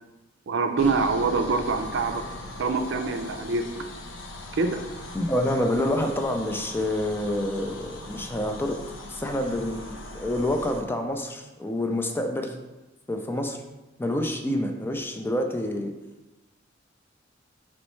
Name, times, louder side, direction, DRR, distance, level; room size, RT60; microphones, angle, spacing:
voice 1, 0.5-2.2 2.6-3.6 4.5-4.8, right 4 dB, 65° right, 7 dB, 0.4 m, -25 dB
sound 1, 0.8-10.8, left 1 dB, 75° left, 0.6 m, -40 dB
voice 2, 5.1-8.8 9.1-12.6 13.1-13.6 14.0-15.9, left 1 dB, 10° left, 4 dB, 0.3 m, -27 dB
5.3 x 3.1 x 3.1 m, 1.0 s
head